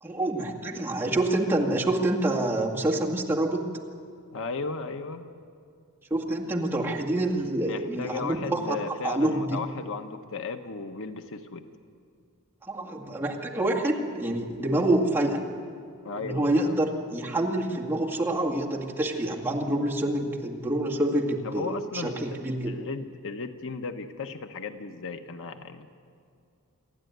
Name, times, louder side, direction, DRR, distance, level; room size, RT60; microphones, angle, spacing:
voice 1, 0.0-3.7 6.1-8.8 9.0-9.6 12.7-15.4 16.2-22.7, right 1 dB, 10° right, -3 dB, 2.0 m, -27 dB
voice 2, 4.3-5.2 7.7-11.6 16.0-16.7 21.4-22.4 22.7-25.9, left 4 dB, 60° left, 7 dB, 1.0 m, -35 dB
27.5 x 11.5 x 9.3 m, 2.4 s
head